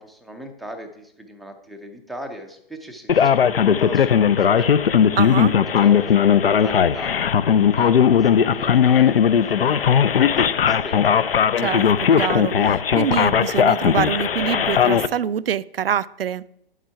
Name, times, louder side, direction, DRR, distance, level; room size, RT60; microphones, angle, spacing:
voice 1, 0.0-4.7 5.8-11.1, equal, ahead, 0.4 m, -39 dB
Male speech man speaking, 3.1-15.1, left 8 dB, 75° left, 0.6 m, -17 dB
voice 2, 5.2-5.6 11.6-11.9 12.2-16.4, right 9 dB, 75° right, 0.5 m, -25 dB
9.2 x 7.3 x 5.7 m
figure-of-eight pair, 125°, 29 cm